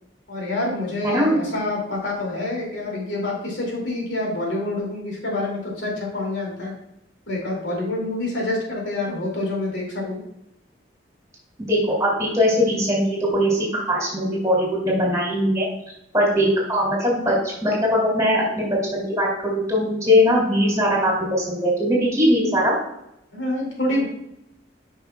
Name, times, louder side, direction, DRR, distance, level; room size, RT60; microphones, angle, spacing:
voice 1, 0.3-6.7 7.3-10.2 23.3-24.0, left 2 dB, 75° left, -1 dB, 2.3 m, -27 dB
voice 2, 11.7-15.7 16.1-18.7 18.9-22.7, equal, 15° right, -4 dB, 2.5 m, -20 dB
9.1 x 5.4 x 2.2 m, 0.83 s
head